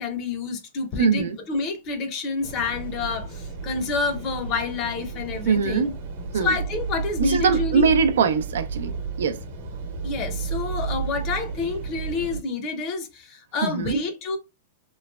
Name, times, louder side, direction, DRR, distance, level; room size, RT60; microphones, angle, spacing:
voice 1, 0.0-5.8 6.3-7.9 10.0-14.4, left 4 dB, 30° left, 0.6 m, -28 dB
voice 2, 1.0-1.4 5.5-5.9 6.3-6.5 7.2-9.4 13.6-14.0, right 5 dB, 85° right, 0.4 m, -22 dB
sound 1, 2.4-12.4, right 5 dB, 55° right, 0.9 m, -32 dB
3.0 x 2.1 x 2.3 m
supercardioid pair, 150°, 0 cm